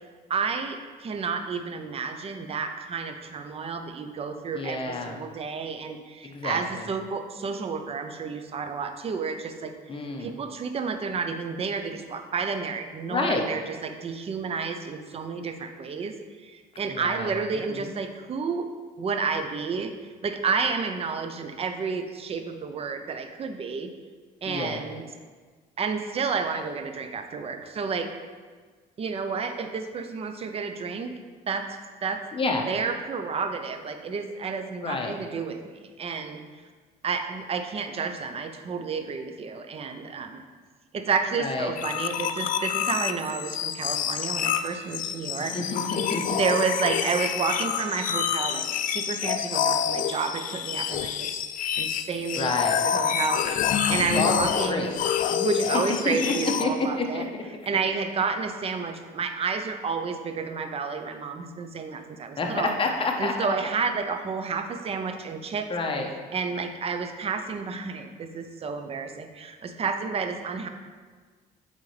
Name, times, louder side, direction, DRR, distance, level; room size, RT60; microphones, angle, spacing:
voice 1, 0.3-16.1 16.4-18.7 19.0-19.9 20.2-23.9 24.4-25.0 25.8-28.1 29.0-31.1 31.5-31.7 32.0-32.2 32.7-36.4 37.0-40.4 40.9-45.5 46.3-48.7 48.9-51.3 51.8-54.9 55.3-57.2 57.7-62.7 63.2-65.7 66.3-70.7, right 5 dB, 35° right, 6 dB, 0.6 m, -30 dB
voice 2, 4.5-5.2 6.2-6.8 9.9-10.3 13.1-13.4 16.9-17.4 17.7-17.9 24.4-24.8 32.3-32.7 34.8-35.2 41.4-41.7 45.4-46.2 52.4-52.8 54.1-54.9 55.7-56.3 56.6-57.2 62.4-63.3 65.7-66.1, left 3 dB, 30° left, 2 dB, 0.9 m, -28 dB
sound 1, 41.8-56.7, left 9 dB, 55° left, 0.4 m, -27 dB
8.4 x 4.1 x 3.3 m, 1.5 s
cardioid pair, 110°, 17 cm